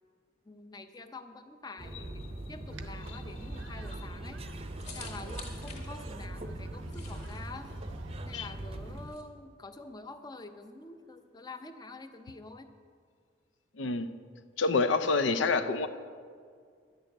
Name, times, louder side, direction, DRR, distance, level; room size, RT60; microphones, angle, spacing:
voice 1, 0.5-4.4 4.9-7.7 8.3-12.7, left 3 dB, 20° left, 8 dB, 0.6 m, -47 dB
sound 1, 1.8-9.1, right 1 dB, 30° right, 0.7 m, -41 dB
sound 2, 2.7-9.2, left 4 dB, 35° left, 2.0 m, -51 dB
sound 3, 2.7-9.2, right 2 dB, 85° right, 0.9 m, -51 dB
voice 2, 13.8-14.1 14.6-15.9, left 4 dB, 70° left, 10 dB, 0.6 m, -27 dB
11.0 x 6.8 x 9.0 m, 2.1 s
head